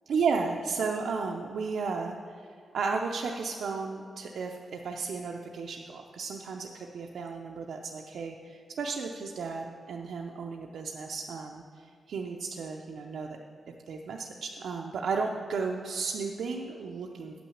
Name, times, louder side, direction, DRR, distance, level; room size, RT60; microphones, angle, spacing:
voice 1, 0.1-2.4 2.7-13.4 13.9-17.4, right 4 dB, 80° right, 1 dB, 0.5 m, -34 dB
8.6 x 6.0 x 7.1 m, 2.2 s
wide cardioid pair, 160°, 0 cm